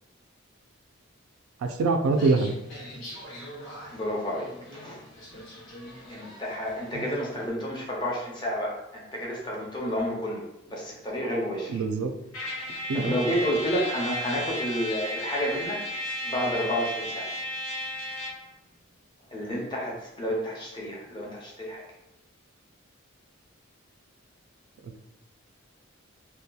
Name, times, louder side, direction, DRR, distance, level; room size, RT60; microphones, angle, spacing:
voice 1, 1.6-2.5 6.9-7.0 11.7-12.1 12.9-13.1 24.8-25.1, right 3 dB, 85° right, 6 dB, 0.3 m, -25 dB
sound 1, 2.1-7.4, equal, 65° left, 0.9 m, -44 dB
voice 2, 3.9-5.0 6.1-11.8 12.5-17.3 19.3-21.8, equal, 20° left, -3 dB, 0.5 m, -31 dB
Trumpet, 12.3-18.5, left 1 dB, 80° left, 0.6 m, -34 dB
2.7 x 2.2 x 2.3 m, 0.90 s
head